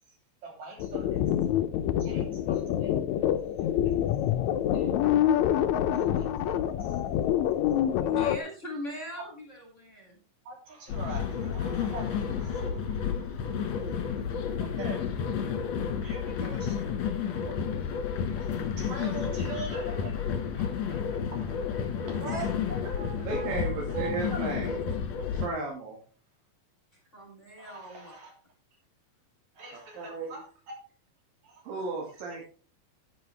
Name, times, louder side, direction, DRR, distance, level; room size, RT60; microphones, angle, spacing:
voice 1, 0.4-1.2 2.0-2.9 3.6-3.9 4.7-5.5 5.9-6.9 7.8-8.5 9.2-9.3 10.5-13.7 14.6-15.4 16.0-17.6 18.4-18.5 18.8-20.2 20.5-20.7 21.3-21.5 22.0-23.6 23.9-24.5 27.6-28.3 29.5-30.8 31.4-31.9 32.3-32.4, right 3 dB, 55° right, 0 dB, 4.5 m, -44 dB
sound 1, 0.8-8.4, left 11 dB, 75° left, 1.7 m, -26 dB
voice 2, 8.0-10.2 22.2-22.5 27.1-28.1, equal, 20° left, 0 dB, 2.9 m, -41 dB
sound 2, 10.9-25.5, left 7 dB, 60° left, 2.5 m, -31 dB
voice 3, 23.3-24.7 25.4-26.0 30.0-30.3 31.7-32.5, right 3 dB, 75° right, 0 dB, 3.7 m, -34 dB
10.0 x 10.0 x 3.4 m, 0.38 s
omnidirectional pair, 4.0 m